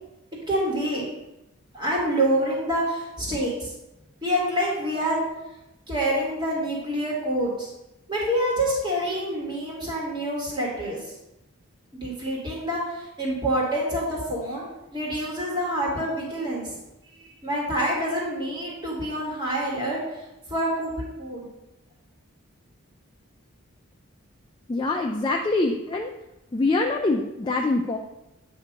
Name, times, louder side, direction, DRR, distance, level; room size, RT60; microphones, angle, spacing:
voice 1, 0.5-1.0 1.7-3.7 4.2-5.2 5.9-7.7 8.1-11.1 12.0-16.8 17.1-21.5, right 1 dB, 20° right, -4 dB, 1.5 m, -27 dB
voice 2, 24.7-26.1 26.5-28.0, left 2 dB, 20° left, 1 dB, 0.3 m, -24 dB
8.0 x 2.7 x 5.1 m, 0.94 s
head